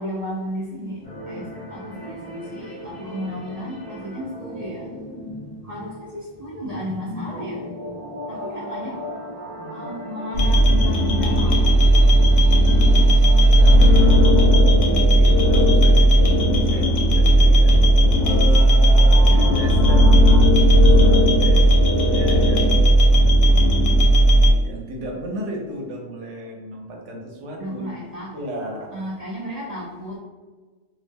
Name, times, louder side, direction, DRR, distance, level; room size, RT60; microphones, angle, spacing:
voice 1, 0.0-4.9 5.6-7.7 8.3-9.1 9.7-12.1 12.5-13.1 19.1-19.8 27.6-28.4 28.9-30.2, equal, 50° right, -6 dB, 0.5 m, -34 dB
sound 1, 1.0-20.4, equal, 10° left, 0.7 m, -37 dB
voice 2, 8.3-9.2 9.6-9.9 13.2-22.9 24.6-29.1, equal, 75° right, -1 dB, 1.0 m, -34 dB
sound 2, 10.3-24.5, right 1 dB, 80° left, 0.9 m, -14 dB
2.4 x 2.1 x 3.3 m, 1.3 s
omnidirectional pair, 1.3 m